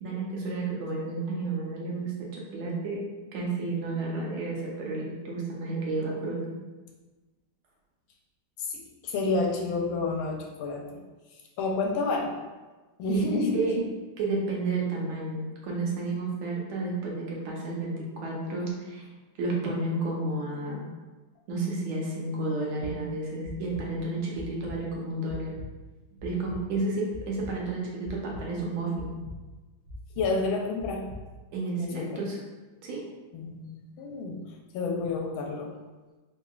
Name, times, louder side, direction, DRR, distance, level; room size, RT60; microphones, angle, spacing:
voice 1, 0.0-3.0 3.3-6.4 13.1-13.3 13.5-13.7 14.2-19.1 19.4-20.8 21.5-25.5 26.2-29.1 31.5-32.4 32.8-33.0, right 3 dB, 85° right, -3 dB, 1.7 m, -31 dB
voice 2, 8.6-11.0 11.3-12.3 13.0-13.6 30.2-31.1 31.8-32.2 33.3-34.4 34.7-35.7, left 3 dB, 80° left, 0 dB, 1.5 m, -29 dB
sound 1, 22.8-22.9 23.4-23.8 24.3-24.7 25.2-25.7 26.2-26.6 27.1-27.5 28.0-28.4 28.9-29.3 29.8-30.3 30.8-31.2, equal, 55° right, 1.0 m, -41 dB
5.4 x 2.7 x 2.3 m, 1.2 s
omnidirectional pair, 2.2 m